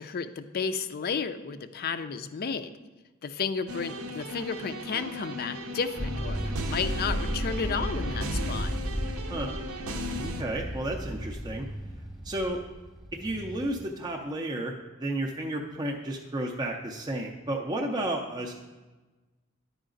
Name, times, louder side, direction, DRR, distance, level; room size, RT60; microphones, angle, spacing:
voice 1, 0.0-2.7 3.2-8.7, left 5 dB, 45° left, 11 dB, 0.4 m, -32 dB
sound 1, 3.7-10.4, equal, 70° right, 0.7 m, -36 dB
sound 2, 6.0-13.9, equal, ahead, 1.0 m, -35 dB
voice 2, 10.2-11.7 12.2-12.6 13.1-18.5, right 1 dB, 20° right, 0 dB, 0.5 m, -32 dB
10.0 x 4.8 x 3.8 m, 1.2 s
head